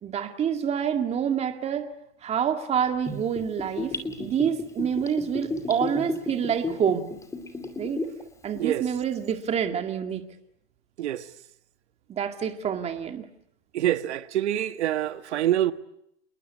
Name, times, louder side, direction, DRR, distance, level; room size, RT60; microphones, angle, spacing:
voice 1, 0.0-1.9 2.2-7.1 7.8-8.0 8.4-10.3 12.1-13.3, right 8 dB, 15° right, 2.0 m, -27 dB
Gurgling / Bathtub (filling or washing), 3.1-8.2 8.5-8.6, left 3 dB, 10° left, 2.5 m, -33 dB
voice 2, 8.6-8.9 11.0-11.3 13.7-15.7, right 12 dB, 70° right, 1.7 m, -26 dB
27.5 x 21.0 x 9.5 m
hypercardioid pair, 145°, 36 cm